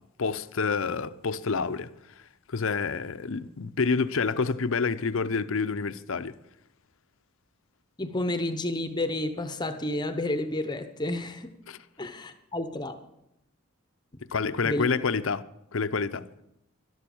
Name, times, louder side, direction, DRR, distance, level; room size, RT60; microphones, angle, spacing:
voice 1, 0.2-1.9 2.5-6.4 11.7-11.8 14.3-15.4 15.7-16.3, left 4 dB, 65° left, 0.6 m, -28 dB
voice 2, 8.0-11.5 12.0-12.9 14.6-14.9, left 1 dB, 20° left, 0.8 m, -30 dB
12.5 x 12.5 x 7.1 m
head